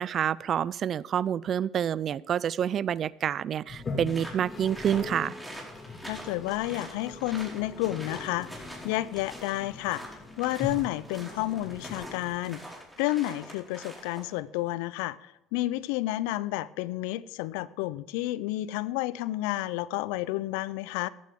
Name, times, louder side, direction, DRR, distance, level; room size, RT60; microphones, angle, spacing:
voice 1, 0.0-5.4, right 9 dB, 50° right, 0.4 m, -28 dB
Toilet flush, 3.6-12.8, left 4 dB, 35° left, 2.1 m, -41 dB
sound 1, 4.1-14.4, right 1 dB, 5° right, 4.7 m, -45 dB
voice 2, 6.0-12.6 13.0-21.1, left 16 dB, 80° left, 0.5 m, -31 dB
14.0 x 11.5 x 3.7 m
hypercardioid pair, 70°, 0 cm